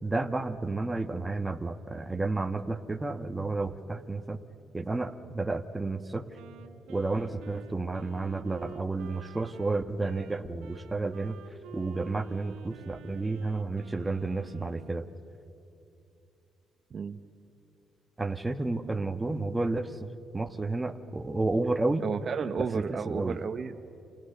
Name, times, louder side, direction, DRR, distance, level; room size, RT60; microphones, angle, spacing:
voice 1, 0.0-4.4 4.7-6.3 6.9-11.4 11.7-15.1 18.2-20.1 20.3-22.0 22.6-23.4, right 3 dB, 15° right, 9 dB, 1.3 m, -31 dB
Wind instrument woodwind instrument, 6.3-15.0, right 8 dB, 90° right, 1.8 m, -50 dB
voice 2, 22.0-24.0, right 6 dB, 50° right, 11 dB, 0.9 m, -33 dB
29.5 x 27.5 x 6.8 m, 2.7 s
cardioid pair, 90°, 0 cm